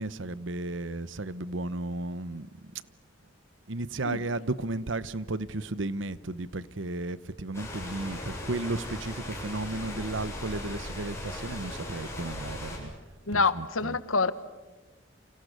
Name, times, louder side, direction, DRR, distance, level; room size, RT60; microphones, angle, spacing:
voice 1, 0.0-2.5 3.7-12.9 13.3-14.0, right 2 dB, 70° right, 17 dB, 0.9 m, -34 dB
sound 1, 7.5-12.8, left 1 dB, 15° left, 7.9 m, -38 dB
voice 2, 13.3-14.3, left 4 dB, 90° left, 14 dB, 1.3 m, -26 dB
30.0 x 27.5 x 6.7 m, 1.2 s
head